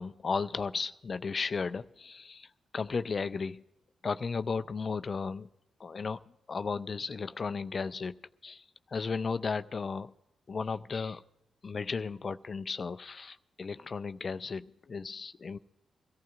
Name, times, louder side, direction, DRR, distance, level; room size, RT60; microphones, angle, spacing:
voice 1, 0.0-3.6 4.0-5.5 5.8-6.2 6.5-10.1 10.5-11.2 11.6-15.6, left 5 dB, 50° left, 12 dB, 0.4 m, -35 dB
24.0 x 14.5 x 2.4 m, 0.90 s
supercardioid pair, 45°, 0 cm